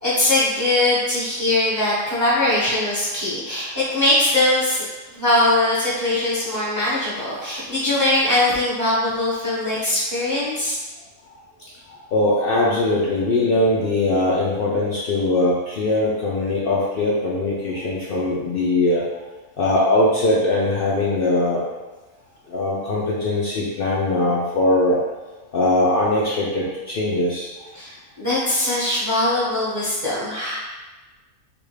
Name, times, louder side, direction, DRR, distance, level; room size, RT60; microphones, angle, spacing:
voice 1, 0.0-4.9 5.1-10.8 27.7-30.6, left 1 dB, 20° right, -9 dB, 0.6 m, -21 dB
voice 2, 12.1-19.0 19.6-21.6 22.5-25.0 25.5-27.5, left 2 dB, 90° left, -6 dB, 0.4 m, -21 dB
3.5 x 2.3 x 3.2 m, 1.2 s
omnidirectional pair, 1.6 m